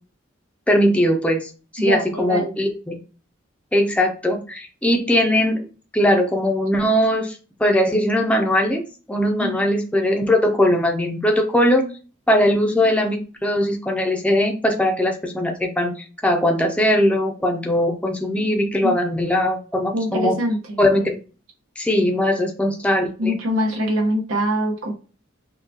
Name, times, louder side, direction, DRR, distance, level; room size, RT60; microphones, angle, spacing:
voice 1, 0.7-3.0 3.7-5.7 5.9-8.8 9.1-11.9 12.3-20.3 20.8-21.2 21.8-23.3, left 1 dB, 5° left, 2 dB, 0.5 m, -20 dB
voice 2, 1.8-2.6 9.4-9.5 18.8-18.9 19.9-20.8 23.2-24.9, equal, 85° right, 1 dB, 1.0 m, -23 dB
5.8 x 2.3 x 2.7 m, 0.36 s
head